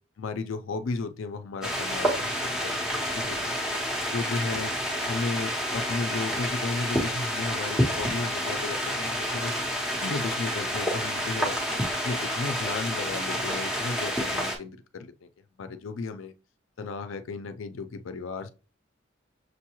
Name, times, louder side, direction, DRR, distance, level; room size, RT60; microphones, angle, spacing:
voice 1, 0.2-3.6 4.1-4.7 5.1-9.5 9.9-11.6 11.9-15.3 15.6-16.3 16.8-18.5, left 3 dB, 85° left, 0.4 m, -34 dB
sound 1, 1.6-14.6, equal, 5° right, 0.9 m, -29 dB
6.3 x 2.3 x 3.0 m
head